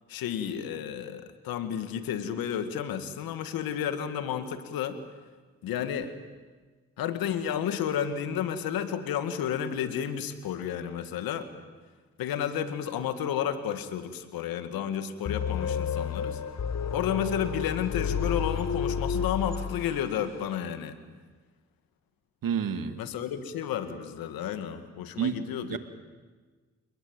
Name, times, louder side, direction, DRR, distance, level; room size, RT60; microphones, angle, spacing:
voice 1, 0.1-5.0 5.6-6.1 7.0-11.5 12.2-16.4 16.9-21.0 23.0-25.8, left 9 dB, 85° left, 9 dB, 2.1 m, -31 dB
sound 1, 15.3-20.3, left 7 dB, 50° left, 1.4 m, -31 dB
voice 2, 22.4-23.0 25.2-25.8, right 7 dB, 70° right, 9 dB, 2.2 m, -30 dB
30.0 x 21.0 x 9.0 m, 1.4 s
supercardioid pair, 50°, 34 cm